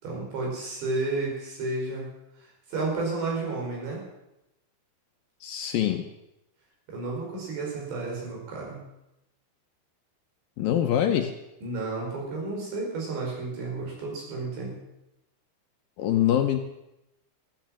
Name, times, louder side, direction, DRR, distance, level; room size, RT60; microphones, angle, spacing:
voice 1, 0.0-2.1 2.4-4.0 6.9-8.8 11.6-14.8, right 3 dB, 90° right, -2 dB, 7.3 m, -32 dB
voice 2, 5.4-6.0 10.6-11.3 16.0-16.6, left 10 dB, 70° left, 5 dB, 2.3 m, -24 dB
13.5 x 11.5 x 7.6 m, 0.88 s
omnidirectional pair, 4.9 m